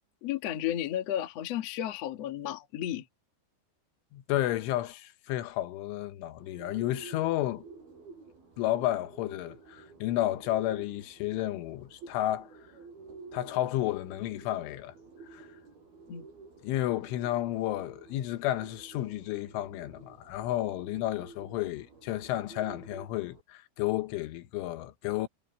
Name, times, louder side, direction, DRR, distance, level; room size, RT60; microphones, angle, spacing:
voice 1, 0.2-3.0 16.1-16.3, left 12 dB, 60° left, 1.7 m, -33 dB
voice 2, 4.1-7.7 8.6-12.5 13.3-14.9 15.3-15.5 16.6-25.3, left 14 dB, 85° left, 3.6 m, -32 dB
Bird, 6.4-23.4, right 4 dB, 50° right, 8.7 m, -51 dB
omnidirectional pair, 5.5 m